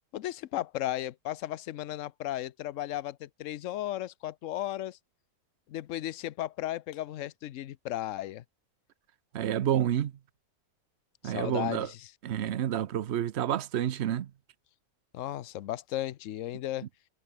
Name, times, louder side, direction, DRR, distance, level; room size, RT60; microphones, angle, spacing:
voice 1, 0.1-5.0 5.7-8.4 11.2-12.1 15.1-16.8, left 13 dB, 65° left, 1.0 m, -35 dB
voice 2, 9.3-10.1 11.2-11.9 12.2-14.3, right 10 dB, 55° right, 0.9 m, -29 dB
omnidirectional pair, 1.5 m